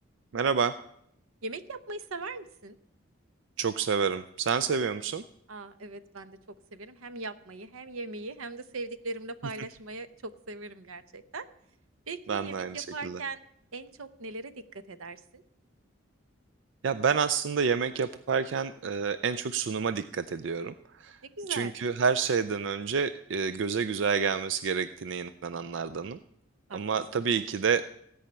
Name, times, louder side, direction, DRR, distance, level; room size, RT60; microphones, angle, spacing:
voice 1, 0.3-0.8 3.6-5.2 12.3-13.2 16.8-21.2 21.5-26.2 26.7-27.8, right 6 dB, 60° right, 12 dB, 0.4 m, -29 dB
voice 2, 1.4-2.8 5.5-6.4 6.7-11.5 12.1-13.4 13.7-15.4 21.2-21.7 26.7-27.0 27.4-27.5, right 3 dB, 90° right, 12 dB, 0.9 m, -40 dB
16.5 x 5.6 x 8.8 m, 0.74 s
head